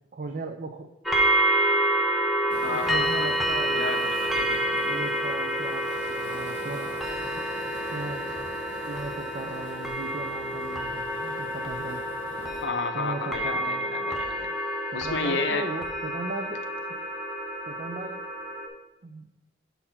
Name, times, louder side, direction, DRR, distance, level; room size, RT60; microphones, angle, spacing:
voice 1, 0.1-0.9 2.7-3.9 4.7-6.9 7.3-7.4 7.9-8.3 8.8-12.1 12.9-13.9 14.9-17.0 17.7-18.2 19.0-19.3, right 3 dB, 45° right, 6 dB, 0.4 m, -37 dB
sound 1, 1.1-18.7, right 1 dB, ahead, 0.7 m, -28 dB
Waves surf, 2.5-12.6, right 1 dB, 75° right, 1.9 m, -45 dB
voice 2, 2.6-3.3 3.7-4.6 12.6-14.5 14.9-15.7, left 4 dB, 70° left, 7 dB, 0.6 m, -31 dB
5.4 x 4.3 x 5.7 m, 0.97 s
head